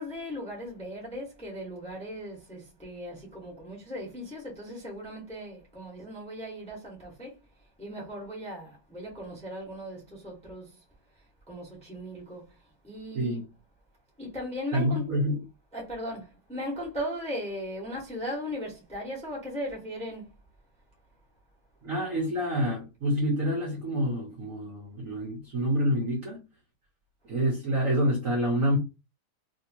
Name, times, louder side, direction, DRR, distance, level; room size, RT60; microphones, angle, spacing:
voice 1, 0.0-7.3 7.8-10.8 11.5-12.5 12.8-13.4 14.2-15.0 15.7-20.3, equal, 5° left, 0.9 m, -38 dB
voice 2, 13.1-13.5 14.7-15.4 21.8-26.4 27.2-28.8, equal, 50° right, 1.0 m, -27 dB
3.4 x 2.8 x 2.8 m
omnidirectional pair, 2.4 m